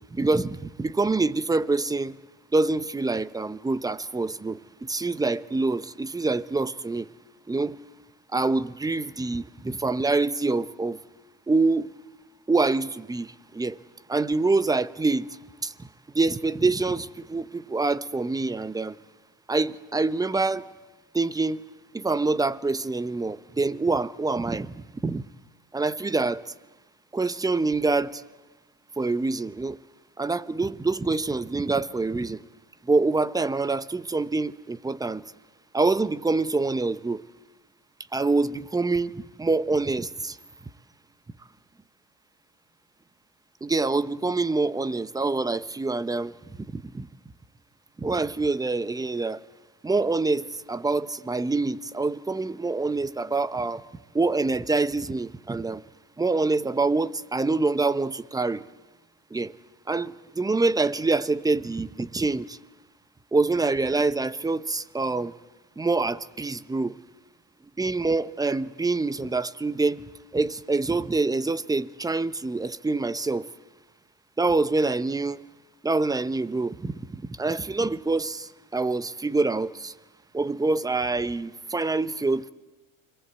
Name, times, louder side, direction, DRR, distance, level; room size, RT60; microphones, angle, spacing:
voice 1, 0.0-2.2 2.5-7.1 7.5-7.8 8.3-11.0 11.5-11.9 12.5-13.8 14.1-15.3 15.6-15.9 16.1-19.0 19.5-20.6 21.1-21.6 21.9-25.2 25.7-26.4 27.1-28.2 29.0-29.8 30.2-32.4 32.9-35.2 35.7-37.2 38.1-40.4 43.6-46.3 46.7-47.1 48.0-49.4 49.8-53.8 54.1-55.8 56.2-58.6 59.3-59.5 59.9-62.6 63.3-65.3 65.8-67.0 67.8-70.0 70.3-73.5 74.4-75.4 75.8-79.9 80.3-82.5, right 3 dB, 10° right, 0.9 m, -26 dB
29.0 x 22.5 x 8.3 m
supercardioid pair, 100°, 39 cm